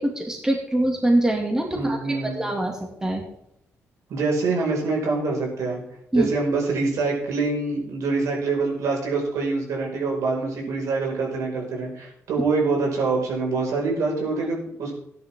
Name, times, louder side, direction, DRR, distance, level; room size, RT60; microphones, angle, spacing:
voice 1, 0.0-3.2 6.1-6.3, right 1 dB, 10° right, 1 dB, 2.5 m, -24 dB
voice 2, 1.7-2.4 4.1-5.8 6.1-14.9, right 3 dB, 80° right, -1 dB, 5.7 m, -25 dB
14.5 x 10.5 x 3.8 m, 0.77 s
cardioid pair, 130°, 5 cm